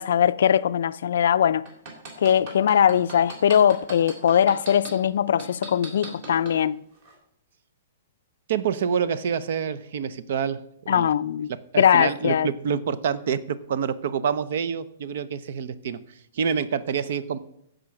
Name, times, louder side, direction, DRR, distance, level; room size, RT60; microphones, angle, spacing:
voice 1, 0.0-1.7 2.2-6.8 10.9-11.5 11.8-12.5, left 9 dB, 70° left, 0.4 m, -21 dB
sound 1, 1.7-4.9 5.4-6.5 7.0-7.1, right 3 dB, 40° right, 3.3 m, -37 dB
voice 2, 8.5-11.1 11.7-16.0 16.3-17.4, right 7 dB, 60° right, 0.7 m, -27 dB
15.0 x 5.1 x 5.9 m
hypercardioid pair, 165°, 0 cm